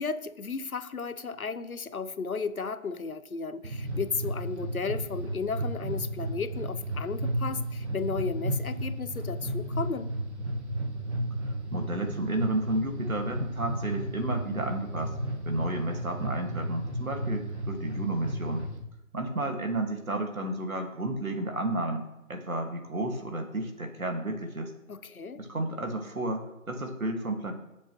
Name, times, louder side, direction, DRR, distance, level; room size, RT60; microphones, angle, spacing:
voice 1, 0.0-10.1 24.9-25.4, left 5 dB, 85° left, 13 dB, 0.9 m, -34 dB
sound 1, 3.6-18.8, right 1 dB, 50° right, 1.5 m, -33 dB
voice 2, 11.7-15.1 15.5-18.7 19.1-22.0 22.3-24.7 25.4-27.5, right 2 dB, 80° right, 4 dB, 2.0 m, -32 dB
14.5 x 7.3 x 3.0 m, 0.91 s
figure-of-eight pair, 165°, 42 cm